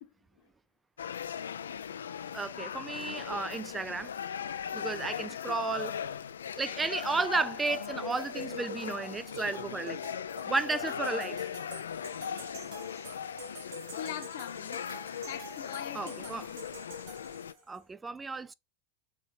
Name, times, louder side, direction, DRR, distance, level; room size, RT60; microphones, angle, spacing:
sound 1, 1.0-17.5, left 8 dB, 85° left, 0.3 m, -39 dB
voice 1, 2.3-4.1 4.7-6.0 6.6-10.0 10.5-11.5 15.9-16.5 17.7-18.5, right 3 dB, 15° right, 0.3 m, -33 dB
sound 2, 7.2-17.8, right 1 dB, 60° right, 1.9 m, -46 dB
voice 2, 13.9-14.8 15.3-16.6, left 10 dB, 70° left, 0.9 m, -42 dB
6.0 x 2.7 x 3.2 m
hypercardioid pair, 95°, 0 cm